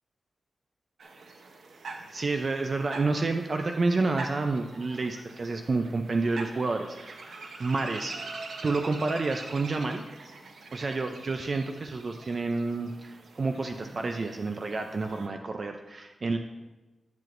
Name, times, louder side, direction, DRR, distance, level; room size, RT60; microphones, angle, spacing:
sound 1, 1.0-15.3, right 3 dB, 80° right, 0.8 m, -44 dB
voice 1, 2.1-7.3 7.6-8.1 8.6-10.1 10.7-16.4, right 3 dB, 40° right, 5 dB, 0.4 m, -29 dB
10.5 x 7.7 x 2.5 m, 1.1 s
wide cardioid pair, 180°, 0 cm